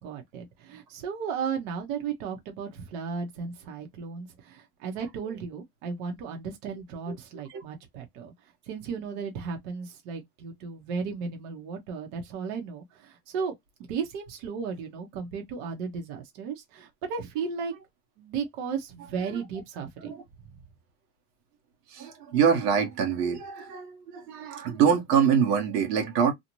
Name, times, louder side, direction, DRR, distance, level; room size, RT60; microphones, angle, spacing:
voice 1, 0.0-8.3 8.7-13.5 13.9-17.7 18.2-20.1, right 6 dB, 60° right, 1.1 m, -35 dB
voice 2, 21.9-26.3, right 7 dB, 85° right, 1.3 m, -25 dB
2.7 x 2.4 x 2.9 m
supercardioid pair, 140°, 46 cm